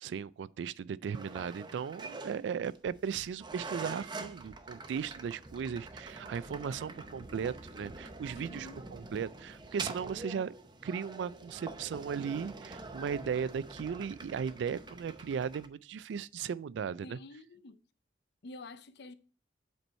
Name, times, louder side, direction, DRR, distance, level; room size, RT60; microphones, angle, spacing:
voice 1, 0.0-10.5 10.8-17.2, right 7 dB, 75° right, 0.3 m, -37 dB
sound 1, 1.1-15.7, right 3 dB, 25° right, 0.7 m, -45 dB
voice 2, 8.4-8.8 17.0-17.8 18.4-19.1, left 2 dB, 65° left, 0.6 m, -48 dB
8.0 x 4.6 x 4.2 m
head